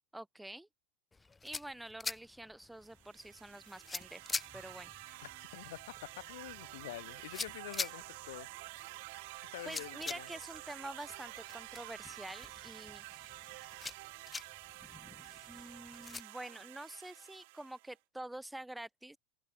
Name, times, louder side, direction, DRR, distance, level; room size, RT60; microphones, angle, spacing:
voice 1, 0.1-0.7 1.4-4.9 9.6-13.0 15.5-19.2, right 1 dB, 5° right, 6.4 m, -47 dB
sound 1, 1.1-16.2, left 4 dB, 10° left, 0.7 m, -46 dB
sound 2, 2.9-17.9, right 25 dB, 65° right, 7.7 m, -50 dB
voice 2, 5.2-5.8 6.2-8.5 9.4-10.3, left 17 dB, 75° left, 1.9 m, -47 dB
supercardioid pair, 130°, 0 cm